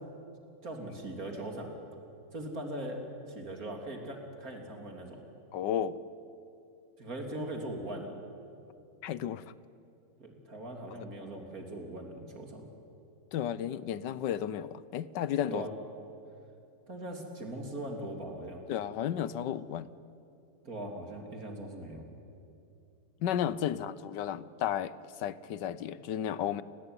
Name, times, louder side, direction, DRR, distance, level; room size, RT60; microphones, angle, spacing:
voice 1, 0.6-1.7 2.3-5.2 7.0-8.2 10.2-12.6 15.5-15.7 16.9-18.6 20.6-22.1 23.7-23.8, right 1 dB, 55° right, 2 dB, 3.8 m, -40 dB
voice 2, 5.5-6.0 9.0-9.4 13.3-15.6 18.7-19.9 23.2-26.6, left 10 dB, 80° left, 17 dB, 1.4 m, -33 dB
30.0 x 20.0 x 9.8 m, 2.7 s
omnidirectional pair, 1.9 m